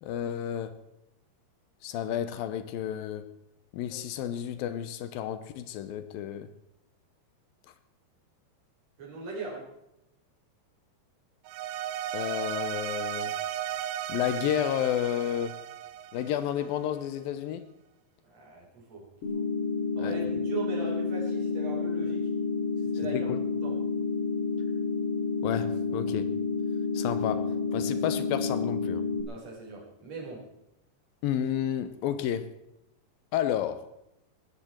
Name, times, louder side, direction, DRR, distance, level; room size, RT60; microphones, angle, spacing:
voice 1, 0.0-0.8 1.8-3.3 3.7-6.5 12.1-13.3 14.1-15.7 16.1-17.7 20.0-20.1 23.0-23.4 25.4-26.3 26.9-29.0 31.2-32.5 33.3-33.9, left 10 dB, 75° left, 2.4 m, -31 dB
voice 2, 9.0-9.7 18.2-19.1 19.3-19.5 20.0-22.3 22.8-23.3 23.6-23.8 29.3-30.4, right 3 dB, 40° right, 5.6 m, -39 dB
sound 1, 11.5-16.8, right 12 dB, 85° right, 3.1 m, -35 dB
sound 2, 19.2-29.2, left 4 dB, 35° left, 2.6 m, -30 dB
19.5 x 14.0 x 4.5 m
omnidirectional pair, 4.9 m